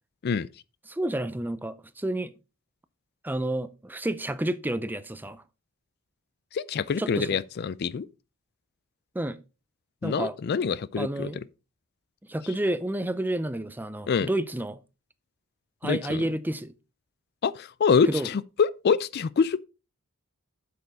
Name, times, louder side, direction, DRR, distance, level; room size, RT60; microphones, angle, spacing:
voice 1, 0.9-2.3 3.2-5.4 7.0-7.3 9.1-9.4 10.0-10.4 11.0-11.4 12.3-14.8 15.8-16.7 18.1-18.3, right 1 dB, 10° right, 0.5 m, -30 dB
voice 2, 6.5-8.1 10.0-11.3 14.1-14.3 15.8-16.2 17.4-19.6, left 6 dB, 50° left, 0.4 m, -25 dB
8.0 x 6.9 x 4.0 m
head